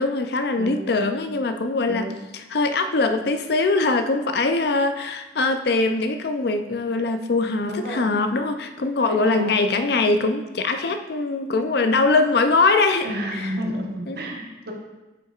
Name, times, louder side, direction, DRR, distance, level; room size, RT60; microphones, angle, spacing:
voice 1, 0.0-2.1 2.3-13.1 14.1-14.2, left 3 dB, 65° left, 7 dB, 0.5 m, -22 dB
voice 2, 0.6-1.0 1.9-2.2 7.7-8.1 9.1-9.5 13.0-14.7, equal, 60° right, -1 dB, 1.2 m, -31 dB
8.9 x 5.7 x 2.4 m, 1.1 s
head